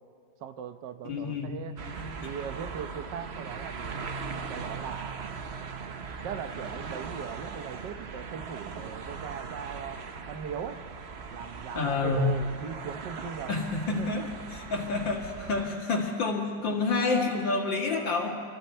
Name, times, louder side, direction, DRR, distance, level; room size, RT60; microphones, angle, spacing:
voice 1, 0.4-1.7 2.2-4.0 4.5-5.5 6.2-10.8 11.3-13.5 13.9-14.1, right 7 dB, 70° right, 9 dB, 1.5 m, -39 dB
voice 2, 1.0-1.5 2.0-2.3 11.7-12.3 13.5-18.3, left 3 dB, 80° left, 0 dB, 2.7 m, -29 dB
sound 1, 1.8-15.7, right 5 dB, 45° right, 0.9 m, -39 dB
29.0 x 24.0 x 4.4 m, 2.3 s
omnidirectional pair, 2.0 m